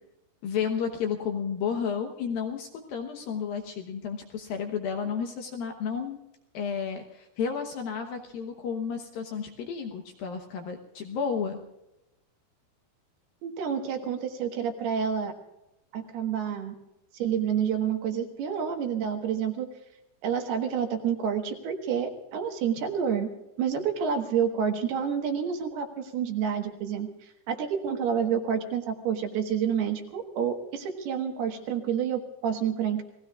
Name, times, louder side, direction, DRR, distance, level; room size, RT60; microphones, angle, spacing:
voice 1, 0.4-6.2 6.5-11.6, left 6 dB, 75° left, 4 dB, 2.2 m, -32 dB
voice 2, 13.4-15.3 15.9-16.7 17.1-19.7 20.2-23.3 23.6-33.0, right 7 dB, 65° right, 4 dB, 3.0 m, -29 dB
29.5 x 18.5 x 2.4 m, 0.90 s
omnidirectional pair, 5.6 m